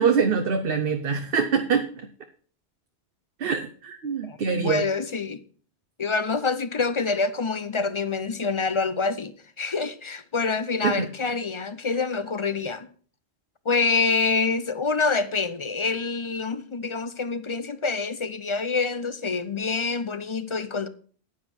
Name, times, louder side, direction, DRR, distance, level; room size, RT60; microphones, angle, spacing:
voice 1, 0.0-1.8 3.4-4.9 10.8-11.1, right 6 dB, 60° right, 1.0 m, -24 dB
voice 2, 4.2-5.4 6.0-12.9 13.7-20.9, left 4 dB, 30° left, 0.7 m, -26 dB
9.8 x 9.6 x 4.4 m
omnidirectional pair, 1.1 m